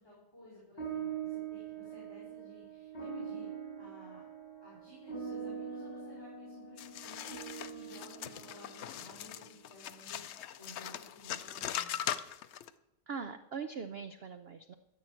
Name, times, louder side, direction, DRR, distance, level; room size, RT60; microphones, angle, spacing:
voice 1, 0.0-3.5 3.7-4.2 4.6-12.1, left 1 dB, 15° left, -7 dB, 4.7 m, -55 dB
sound 1, 0.8-9.4, right 7 dB, 35° left, 5.5 m, -43 dB
sound 2, 6.8-12.7, left 10 dB, 90° left, 0.6 m, -40 dB
voice 2, 13.1-14.7, right 5 dB, 70° right, 9 dB, 0.5 m, -41 dB
14.5 x 7.5 x 7.6 m, 0.94 s
omnidirectional pair, 1.8 m